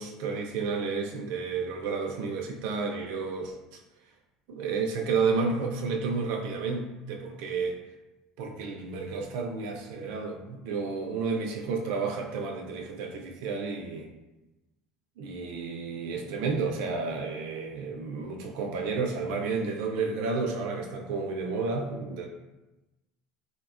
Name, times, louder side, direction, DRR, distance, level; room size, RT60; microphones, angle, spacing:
voice 1, 0.0-3.8 4.5-7.8 8.4-14.1 15.2-22.3, right 4 dB, 75° right, 1 dB, 0.3 m, -31 dB
4.0 x 2.1 x 2.4 m, 1.1 s
cardioid pair, 145°, 0 cm